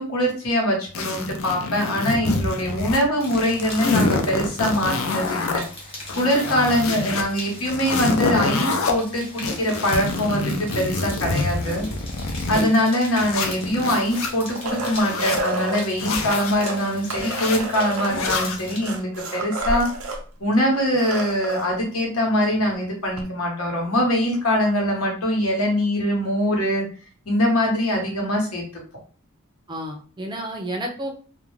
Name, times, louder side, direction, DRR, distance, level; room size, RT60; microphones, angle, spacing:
voice 1, 0.0-5.6 6.1-11.9 12.5-19.9 20.4-26.8 27.3-28.6, equal, 90° left, -1 dB, 1.0 m, -23 dB
sound 1, 0.9-3.0 3.3-5.6 6.0-7.2 7.6-8.9 9.4-12.7 13.1-14.3 14.8-15.4 16.0-16.5 17.1-17.6 18.1-18.6, left 3 dB, 65° left, 0.5 m, -26 dB
sound 2, 3.2-18.8, left 1 dB, 30° left, 0.9 m, -40 dB
sound 3, 14.0-15.8 16.5-20.2 20.5-20.6 20.9-21.7 23.2-23.3, right 2 dB, 85° right, 0.6 m, -30 dB
voice 2, 29.7-31.1, equal, 20° right, 3 dB, 0.4 m, -31 dB
2.4 x 2.1 x 3.1 m, 0.40 s
head